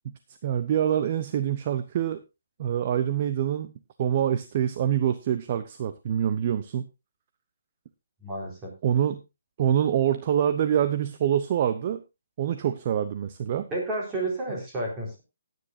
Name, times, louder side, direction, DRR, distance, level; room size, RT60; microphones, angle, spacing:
voice 1, 0.4-2.2 2.6-3.7 4.0-6.9 8.8-9.2 9.6-12.0 12.4-13.7, right 9 dB, 35° right, 11 dB, 0.7 m, -25 dB
voice 2, 8.2-8.7 13.7-15.2, right 2 dB, 15° right, -2 dB, 4.4 m, -31 dB
17.5 x 9.4 x 2.7 m, 0.25 s
hypercardioid pair, 165°, 0 cm